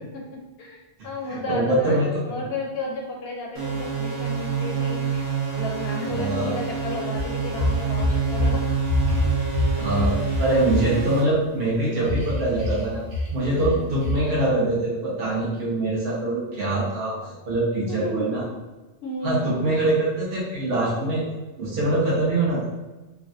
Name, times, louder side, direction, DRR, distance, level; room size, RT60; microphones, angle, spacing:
voice 1, 0.6-8.6 9.2-9.3 13.7-14.2 17.9-18.4 19.0-19.6, left 1 dB, 65° left, -1 dB, 0.7 m, -33 dB
voice 2, 1.2-2.2 6.0-6.5 9.7-13.0 13.3-18.4 19.2-21.2 21.6-22.7, right 2 dB, 55° right, -7 dB, 0.9 m, -24 dB
sound 1, 3.5-11.2, right 6 dB, 30° right, 0.6 m, -27 dB
sound 2, 7.2-8.5 8.8-10.8 12.1-12.8 13.1-13.3 13.6-13.8 14.0-14.2, left 2 dB, 85° right, 1.1 m, -24 dB
3.3 x 2.2 x 2.5 m, 1.1 s
omnidirectional pair, 1.2 m